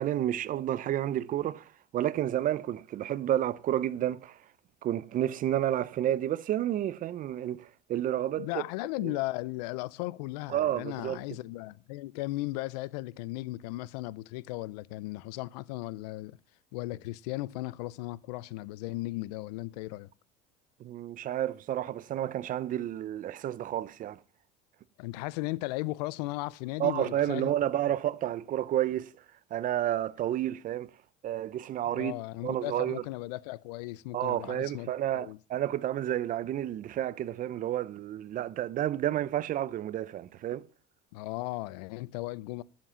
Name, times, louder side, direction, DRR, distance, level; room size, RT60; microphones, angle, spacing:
voice 1, 0.0-4.4 4.8-8.5 9.0-9.1 10.5-11.2 20.8-24.2 26.8-29.1 29.5-30.9 31.2-32.1 32.4-33.0 34.1-40.6, right 12 dB, 45° right, 0.7 m, -30 dB
voice 2, 8.4-16.4 16.7-20.1 25.0-27.5 27.9-28.0 31.9-35.4 41.1-42.6, left 19 dB, 85° left, 0.5 m, -36 dB
11.5 x 7.5 x 5.8 m
supercardioid pair, 110°, 20 cm